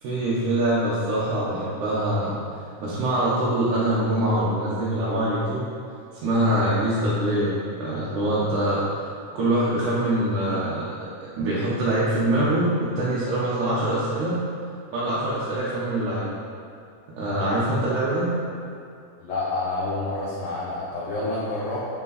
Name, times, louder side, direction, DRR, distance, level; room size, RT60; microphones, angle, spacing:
voice 1, 0.0-2.4 2.8-5.7 6.2-8.8 9.4-10.9 11.4-14.4 14.9-16.3 17.2-18.4, right 1 dB, 85° right, -9 dB, 2.6 m, -24 dB
voice 2, 19.2-21.9, left 2 dB, 60° left, -7 dB, 1.3 m, -28 dB
8.1 x 5.1 x 4.1 m, 2.3 s
omnidirectional pair, 3.4 m